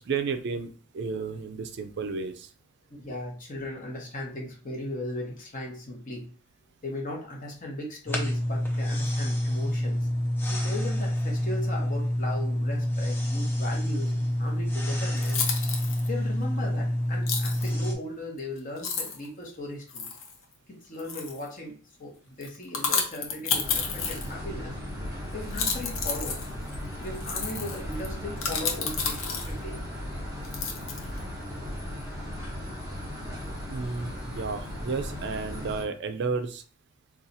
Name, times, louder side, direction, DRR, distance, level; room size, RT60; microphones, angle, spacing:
voice 1, 0.1-2.5 33.7-36.6, right 4 dB, 55° right, 9 dB, 0.4 m, -32 dB
voice 2, 2.9-6.3 6.8-10.1 10.5-15.4 16.1-20.1 20.7-21.7 22.0-24.8 25.3-26.3 27.0-29.8, left 1 dB, 40° left, -1 dB, 1.0 m, -37 dB
sound 1, 8.1-17.9, left 1 dB, 10° left, 0.5 m, -28 dB
sound 2, 14.6-14.7 15.2-16.1 17.3-17.7 18.4-18.5 18.8-19.3 19.9-20.3 21.0-21.5 22.4-24.5 25.4-29.7 30.4-31.2, left 5 dB, 75° left, 0.7 m, -31 dB
sound 3, 23.6-35.8, equal, 15° right, 1.1 m, -37 dB
2.7 x 2.3 x 4.0 m, 0.39 s
head